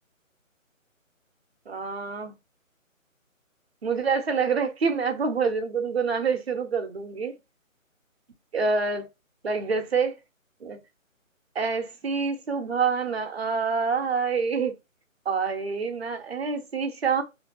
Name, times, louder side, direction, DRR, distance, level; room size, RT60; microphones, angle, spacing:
voice 1, 1.7-2.3 3.8-7.3 8.5-9.1 9.4-10.2 10.6-10.8 11.6-14.7 15.3-17.2, right 5 dB, 50° right, 0.6 m, -26 dB
2.5 x 2.4 x 2.7 m
hypercardioid pair, 165°, 40 cm